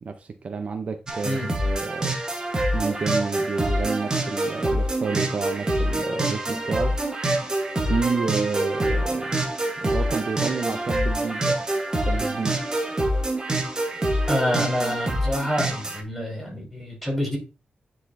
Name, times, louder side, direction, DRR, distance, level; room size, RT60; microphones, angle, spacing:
voice 1, 0.0-2.2 2.7-6.9 7.9-9.4 9.8-11.6 12.0-12.6, right 5 dB, 45° right, 0.6 m, -30 dB
sound 1, 1.1-16.0, right 1 dB, 25° right, 1.2 m, -26 dB
voice 2, 14.3-17.4, equal, 5° left, 3.5 m, -27 dB
9.9 x 4.1 x 2.6 m
wide cardioid pair, 155°, 3 cm